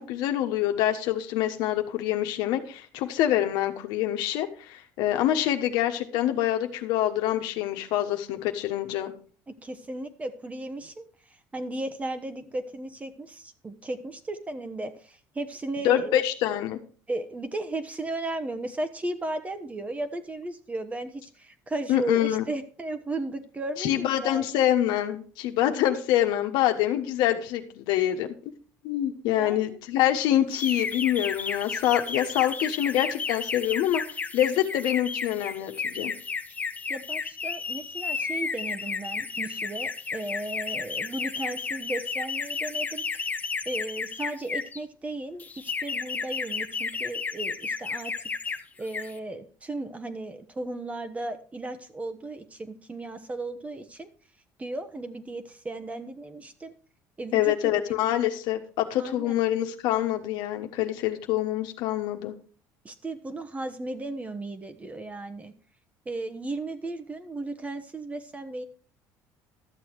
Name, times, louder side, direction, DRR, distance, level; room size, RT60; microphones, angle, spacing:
voice 1, 0.0-9.1 15.8-16.8 21.9-22.4 23.8-28.3 28.8-34.0 34.3-36.1 57.3-62.3, left 12 dB, 75° left, 6 dB, 1.3 m, -26 dB
voice 2, 9.5-11.1 11.5-16.2 17.1-24.5 29.4-29.8 36.9-43.0 43.6-48.3 48.8-54.1 54.6-56.7 57.2-57.7 59.0-59.3 62.8-65.5 66.0-68.6, right 2 dB, 20° right, 10 dB, 1.2 m, -35 dB
sound 1, 30.5-44.8 45.4-48.6 48.9-49.2, left 5 dB, 20° left, 0.8 m, -32 dB
12.5 x 7.2 x 4.6 m, 0.42 s
cardioid pair, 115°, 7 cm